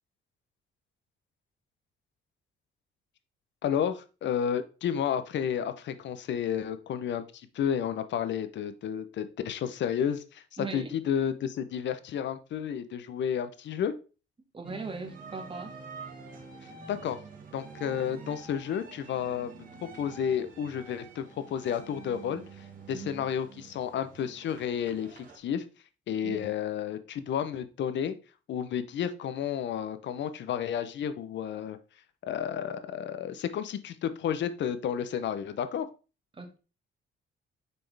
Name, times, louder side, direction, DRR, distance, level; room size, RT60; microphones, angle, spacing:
voice 1, 3.6-10.4 10.7-13.9 16.9-17.2 17.5-19.5 19.9-22.4 22.9-25.6 26.1-28.1 28.5-31.8 32.2-35.9, left 8 dB, 65° left, 11 dB, 0.7 m, -31 dB
voice 2, 10.6-10.9 14.5-15.7 22.9-23.3 26.2-26.5 36.3-36.6, right 4 dB, 25° right, 5 dB, 1.4 m, -39 dB
sound 1, 14.6-25.4, right 5 dB, 45° right, 1.6 m, -47 dB
6.7 x 4.3 x 3.4 m, 0.33 s
cardioid pair, 90°, 20 cm